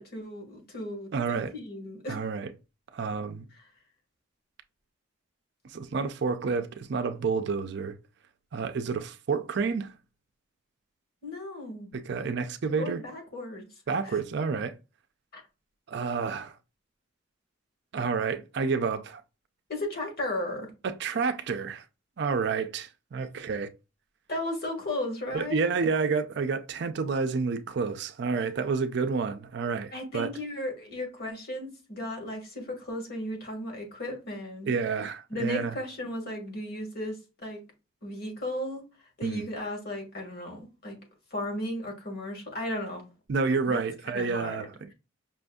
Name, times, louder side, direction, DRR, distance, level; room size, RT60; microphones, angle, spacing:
voice 1, 0.0-2.2 11.2-12.0 12.8-13.7 14.0-14.2 15.3-15.4 19.7-20.7 24.3-25.7 29.9-34.7 35.3-37.6 38.0-38.8 39.2-41.0 41.3-43.1 43.7-43.8 44.1-44.7, left 1 dB, 50° left, 1.5 m, -35 dB
voice 2, 1.1-1.5 2.1-2.5 2.9-3.5 5.6-8.0 8.5-9.9 11.9-13.0 13.9-14.8 15.9-16.6 17.9-19.2 20.8-21.8 22.2-23.7 25.3-30.3 34.7-35.7 39.2-39.4 43.3-44.9, right 5 dB, 60° right, 0.4 m, -29 dB
5.5 x 2.6 x 2.2 m
head